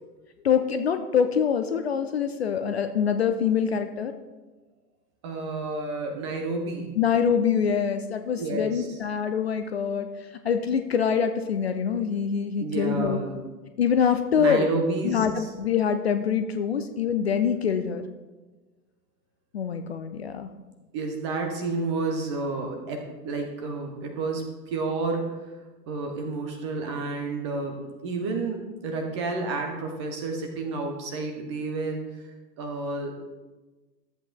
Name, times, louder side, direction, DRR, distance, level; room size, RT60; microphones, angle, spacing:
voice 1, 0.4-4.1 7.0-10.1 10.4-13.2 13.8-14.7 15.0-18.0 19.5-20.5, left 7 dB, 40° left, 8 dB, 0.5 m, -25 dB
voice 2, 5.2-7.0 8.4-9.0 12.6-13.4 14.4-15.5 20.9-25.4 25.9-27.8 28.0-32.2 32.6-33.1, right 3 dB, 20° right, 3 dB, 0.5 m, -30 dB
13.5 x 7.9 x 2.2 m, 1.2 s
figure-of-eight pair, 110°, 50 cm